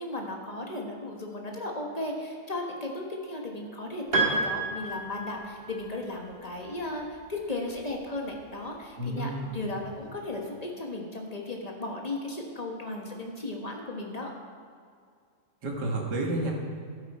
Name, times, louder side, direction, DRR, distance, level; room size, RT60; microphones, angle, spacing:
voice 1, 0.0-14.3, left 2 dB, 25° left, 0 dB, 1.0 m, -35 dB
Piano, 4.1-5.8, right 3 dB, 30° right, 1.9 m, -29 dB
voice 2, 9.0-9.5 15.6-16.5, right 1 dB, 55° right, 0 dB, 2.1 m, -30 dB
12.0 x 9.4 x 4.3 m, 2.2 s
omnidirectional pair, 2.3 m